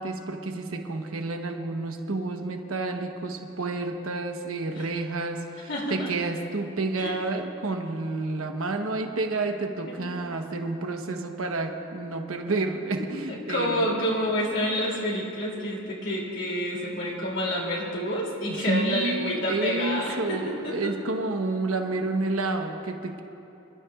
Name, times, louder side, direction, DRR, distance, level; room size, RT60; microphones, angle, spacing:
voice 1, 0.0-13.8 18.5-23.2, right 3 dB, 85° right, 4 dB, 1.1 m, -30 dB
voice 2, 5.7-6.1 7.0-7.2 9.9-10.0 13.0-20.8, equal, 65° left, -4 dB, 2.8 m, -29 dB
27.0 x 13.0 x 2.4 m, 2.9 s
head